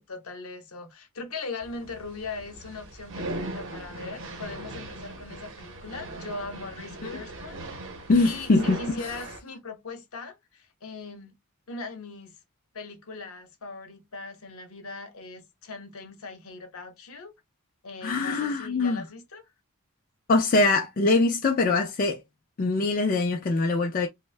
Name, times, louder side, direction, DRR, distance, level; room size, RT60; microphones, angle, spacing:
voice 1, 0.0-7.6 8.2-11.3 11.7-12.4 12.7-17.3 17.8-19.4, left 3 dB, 70° left, 0.8 m, -40 dB
sound 1, 1.6-9.4, right 1 dB, 60° right, 0.8 m, -39 dB
voice 2, 8.1-9.1 18.0-19.0 20.3-22.2 22.6-24.1, left 3 dB, 40° left, 0.4 m, -23 dB
2.6 x 2.1 x 3.2 m
head